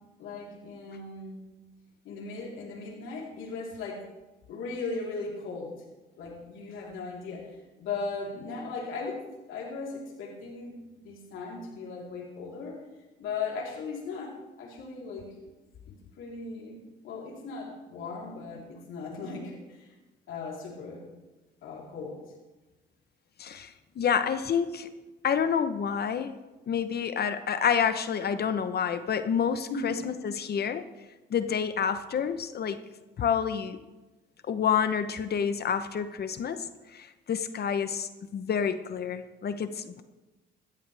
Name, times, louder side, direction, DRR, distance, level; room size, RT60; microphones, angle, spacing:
voice 1, 0.2-1.4 2.0-4.1 4.5-5.8 6.2-9.2 9.5-12.8 13.2-15.3 16.2-19.9 20.3-21.1 21.6-22.2 29.7-30.0, left 4 dB, 85° left, -4 dB, 3.8 m, -37 dB
voice 2, 23.4-24.9 25.2-26.3 26.7-30.8 31.3-32.8 33.2-33.8 34.5-36.7 36.9-40.0, left 7 dB, 55° left, 10 dB, 0.9 m, -28 dB
15.5 x 13.5 x 3.4 m, 1.1 s
cardioid pair, 90°, 20 cm